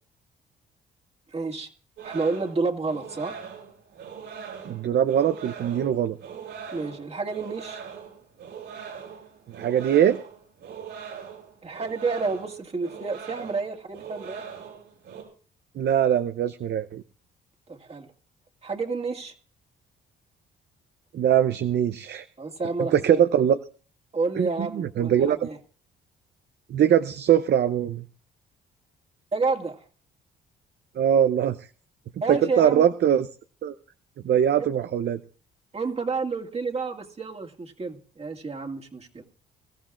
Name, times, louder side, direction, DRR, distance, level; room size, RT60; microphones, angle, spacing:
voice 1, 1.3-1.7 2.0-3.4 6.7-7.8 11.6-14.4 17.7-18.1 18.6-19.3 22.4-23.2 24.1-25.6 29.3-29.8 32.2-32.8 34.6-34.7 35.7-39.2, right 4 dB, 30° right, 2.1 m, -30 dB
sound 1, 2.0-15.2, right 7 dB, 85° right, 6.0 m, -41 dB
voice 2, 4.6-6.2 9.6-10.2 15.8-17.0 21.1-22.2 22.9-23.6 24.4-25.5 26.7-28.0 31.0-31.6 32.3-33.3 33.6-33.7 34.2-35.2, right 9 dB, 60° right, 0.7 m, -22 dB
23.0 x 14.0 x 2.5 m
cardioid pair, 90°, 20 cm